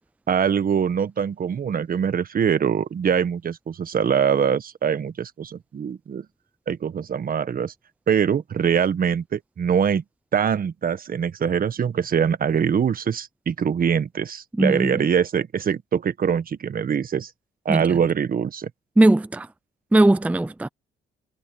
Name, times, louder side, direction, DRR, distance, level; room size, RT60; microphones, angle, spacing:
voice 1, 0.3-6.2 6.7-7.7 8.1-10.0 10.3-17.3 17.6-18.7, right 7 dB, 45° right, 1.3 m, -23 dB
voice 2, 14.6-14.9 17.7-17.8 19.0-19.5 19.9-20.7, right 2 dB, 5° right, 0.5 m, -18 dB
cardioid pair, 90°, 20 cm